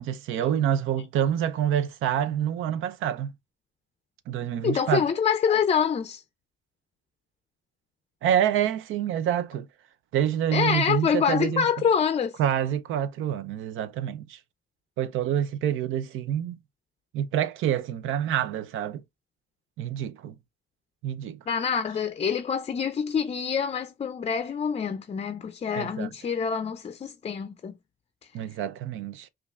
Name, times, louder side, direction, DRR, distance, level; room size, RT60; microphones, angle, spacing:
voice 1, 0.0-3.3 4.3-5.0 8.2-9.7 10.1-11.7 12.4-14.4 15.0-16.6 17.1-19.0 19.8-20.3 21.0-21.4 25.7-26.1 28.3-29.3, right 10 dB, 85° right, 0.5 m, -27 dB
voice 2, 4.6-6.2 10.5-12.4 21.5-27.8, left 7 dB, 30° left, 0.4 m, -26 dB
5.3 x 2.4 x 2.4 m
cardioid pair, 90°, 20 cm